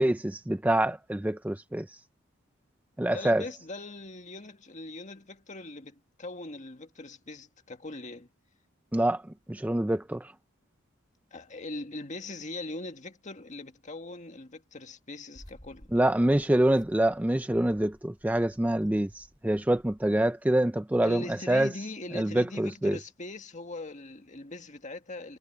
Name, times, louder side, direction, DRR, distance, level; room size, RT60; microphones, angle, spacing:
voice 1, 0.0-1.9 3.0-3.4 8.9-9.2 9.5-10.3 15.9-21.7 22.1-23.0, right 1 dB, 10° right, 0.4 m, -26 dB
voice 2, 3.1-8.3 11.3-15.9 21.0-25.4, left 2 dB, 35° left, 1.8 m, -41 dB
sound 1, 15.3-20.2, equal, 20° left, 4.9 m, -56 dB
head